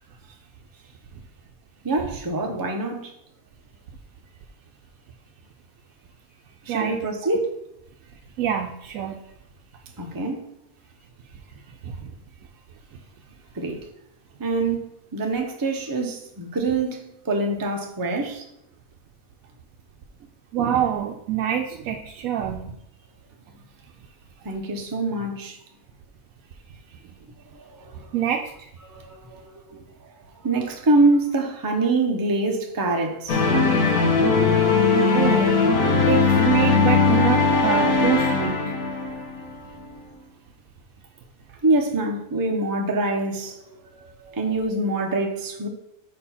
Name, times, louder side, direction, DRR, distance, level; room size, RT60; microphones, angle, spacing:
voice 1, 1.8-3.1 6.6-7.6 10.0-10.4 13.5-13.8 14.4-14.9 15.1-18.4 24.4-25.6 27.5-28.1 28.8-30.1 30.4-33.5 38.6-39.2 41.6-43.6 43.9-45.7, right 2 dB, 20° right, 0.6 m, -25 dB
voice 2, 8.4-9.2 11.8-12.1 20.5-22.8 28.1-28.7 35.1-35.6 36.1-38.7, right 9 dB, 75° right, 1.0 m, -26 dB
sound 1, 33.3-39.5, left 4 dB, 80° left, 1.5 m, -19 dB
5.3 x 4.3 x 5.6 m
omnidirectional pair, 1.5 m